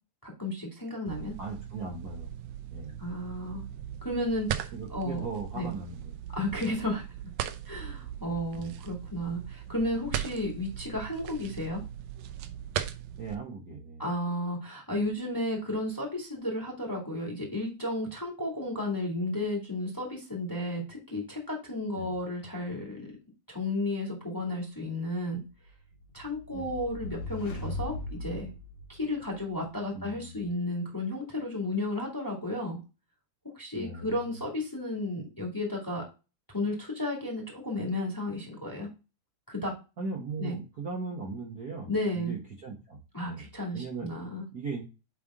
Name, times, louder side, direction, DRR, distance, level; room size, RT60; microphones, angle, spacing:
voice 1, 0.2-1.3 3.0-3.6 4.0-4.6 4.9-5.2 5.5-5.7 6.3-7.0 7.7-11.8 14.0-23.1 23.5-25.4 26.1-28.5 28.9-32.8 33.6-36.0 36.5-38.9 39.5-39.7 40.4-40.6 41.9-42.3 43.1-44.5, left 1 dB, 10° left, -1 dB, 1.8 m, -33 dB
sound 1, 1.1-13.4, right 10 dB, 75° right, 1.8 m, -39 dB
voice 2, 1.4-2.3 2.7-3.0 4.7-6.2 6.4-6.5 8.5-8.8 13.2-14.0 21.9-22.1 26.5-26.7 29.9-30.5 33.7-34.3 40.0-43.0 43.2-43.4 43.7-44.1 44.5-44.8, right 3 dB, 45° right, -2 dB, 1.5 m, -38 dB
sound 2, 25.7-29.5, left 2 dB, 85° left, 2.9 m, -39 dB
8.5 x 3.5 x 3.6 m, 0.29 s
omnidirectional pair, 3.4 m